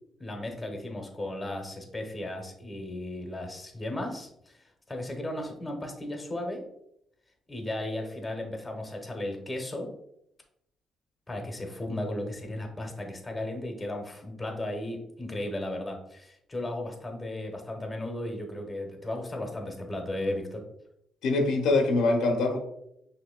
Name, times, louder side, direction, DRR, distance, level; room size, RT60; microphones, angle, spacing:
voice 1, 0.2-6.6 7.5-9.9 11.3-20.6, left 1 dB, 20° left, 3 dB, 1.0 m, -35 dB
voice 2, 21.2-22.6, left 2 dB, 85° left, 3 dB, 0.8 m, -24 dB
5.9 x 2.8 x 2.2 m, 0.77 s
cardioid pair, 90°, 0 cm